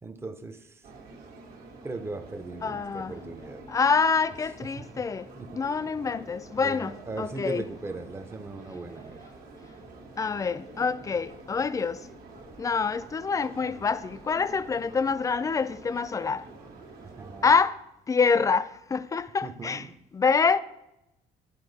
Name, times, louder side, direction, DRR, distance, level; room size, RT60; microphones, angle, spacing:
voice 1, 0.0-0.9 1.8-3.6 5.0-5.1 5.3-5.6 6.6-9.3 17.0-17.6 19.4-19.9, right 3 dB, 15° right, 0.6 m, -38 dB
sound 1, 0.8-17.6, right 3 dB, 65° right, 1.5 m, -48 dB
voice 2, 2.6-3.1 3.7-5.3 5.6-7.6 10.2-12.1 12.6-16.5 17.4-17.8 18.1-19.9 20.1-20.6, left 5 dB, 20° left, 0.3 m, -26 dB
11.5 x 4.4 x 4.0 m
cardioid pair, 110°, 17 cm